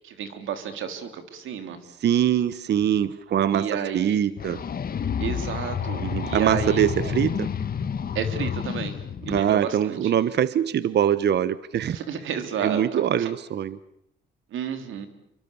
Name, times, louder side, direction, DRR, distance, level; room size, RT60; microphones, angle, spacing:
voice 1, 0.0-1.8 3.5-4.2 5.2-7.2 8.1-8.9 9.2-10.1 11.9-13.3 14.5-15.1, right 8 dB, 80° right, 8 dB, 3.5 m, -31 dB
voice 2, 2.0-4.6 6.0-7.5 9.3-12.0 12.6-13.8, right 10 dB, 60° right, 16 dB, 0.9 m, -23 dB
sound 1, 4.4-9.4, left 7 dB, 50° left, 1.8 m, -29 dB
28.0 x 24.0 x 7.1 m, 0.77 s
cardioid pair, 90°, 20 cm